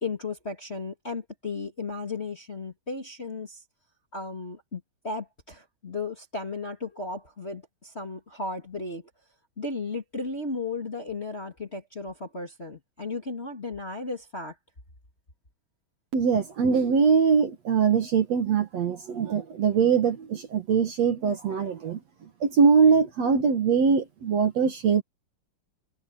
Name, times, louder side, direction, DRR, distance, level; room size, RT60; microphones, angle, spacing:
voice 1, 0.0-3.6 4.1-9.1 9.6-14.5, left 3 dB, 20° left, 2.2 m, -35 dB
voice 2, 16.1-22.0 22.4-25.0, right 6 dB, 55° right, 2.4 m, -22 dB
omnidirectional pair, 4.1 m